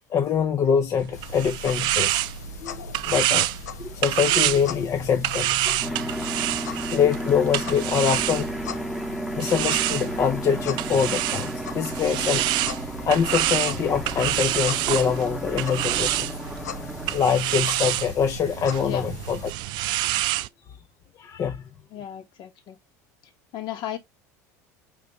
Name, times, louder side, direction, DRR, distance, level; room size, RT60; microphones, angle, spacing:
voice 1, 0.1-2.2 2.6-3.5 3.8-6.5 6.9-8.5 9.4-12.5 13.1-16.4 17.1-19.4 21.2-21.6, left 7 dB, 40° left, 0.6 m, -24 dB
sound 1, 1.0-8.8 9.4-20.5, right 16 dB, 60° right, 0.3 m, -28 dB
sound 2, 1.1-19.5, left 5 dB, 85° left, 0.6 m, -39 dB
sound 3, 5.8-17.2, right 1 dB, ahead, 0.9 m, -33 dB
voice 2, 21.9-22.8 23.5-24.0, left 10 dB, 55° left, 1.2 m, -34 dB
5.1 x 3.2 x 2.9 m
hypercardioid pair, 75°, 9 cm